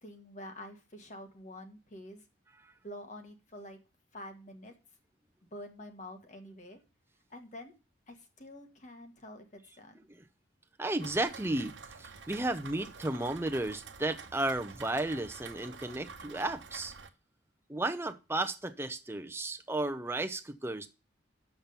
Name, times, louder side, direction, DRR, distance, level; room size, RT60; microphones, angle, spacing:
voice 1, 0.0-2.2 2.8-3.8 4.1-4.7 5.5-6.8 7.3-7.7 8.1-10.0, left 1 dB, 40° left, 5 dB, 1.5 m, -47 dB
voice 2, 10.8-16.9 17.7-20.9, right 2 dB, 15° right, 8 dB, 0.7 m, -33 dB
Rain, 11.0-17.1, right 5 dB, 85° right, 0.9 m, -48 dB
7.3 x 6.0 x 6.8 m, 0.31 s
head